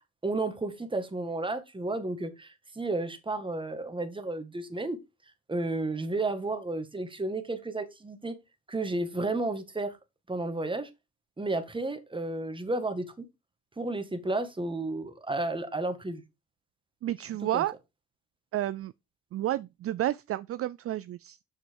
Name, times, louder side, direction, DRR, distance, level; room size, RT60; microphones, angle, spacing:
voice 1, 0.0-5.0 5.5-8.4 8.7-10.0 10.3-10.9 11.4-13.3 13.8-16.2 17.5-17.6, right 2 dB, 15° right, 1.9 m, -32 dB
voice 2, 17.0-17.7 18.5-18.9 19.3-21.4, right 13 dB, 50° right, 0.4 m, -31 dB
7.6 x 6.0 x 4.7 m
cardioid pair, 90°, 30 cm